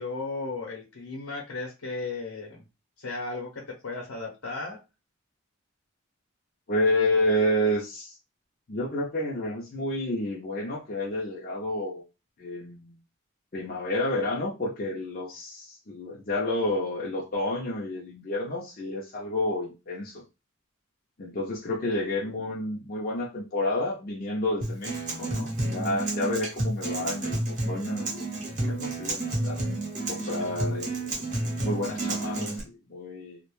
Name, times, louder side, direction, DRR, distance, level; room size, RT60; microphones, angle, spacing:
voice 1, 0.0-2.6 3.0-4.8, left 3 dB, 85° left, 0.7 m, -35 dB
voice 2, 6.7-8.1 8.7-12.0 12.4-13.0 13.5-20.2 21.2-29.6 30.1-33.4, left 1 dB, 40° left, 0.5 m, -30 dB
Acoustic guitar, 24.6-32.6, right 2 dB, 35° right, 0.8 m, -30 dB
2.3 x 2.1 x 3.0 m
head